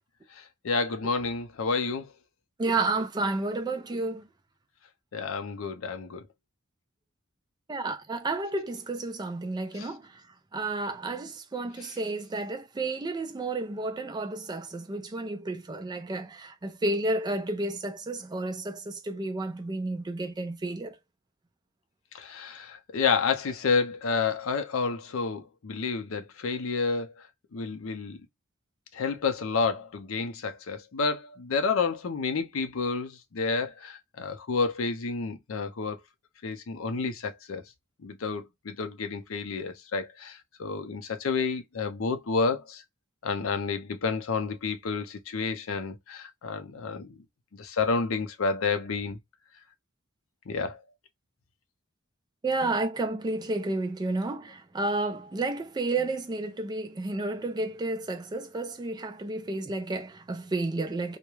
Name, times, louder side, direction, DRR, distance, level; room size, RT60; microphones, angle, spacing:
voice 1, 0.3-2.1 5.1-6.2 9.7-9.9 22.1-27.3 27.5-28.2 28.9-36.0 36.4-37.6 38.0-42.8 43.2-47.2 47.5-49.2 50.5-50.8, left 4 dB, 65° left, 0.5 m, -30 dB
voice 2, 2.6-4.3 7.7-10.0 10.5-21.0 52.4-61.2, right 2 dB, 20° right, 0.3 m, -31 dB
2.3 x 2.1 x 3.0 m
head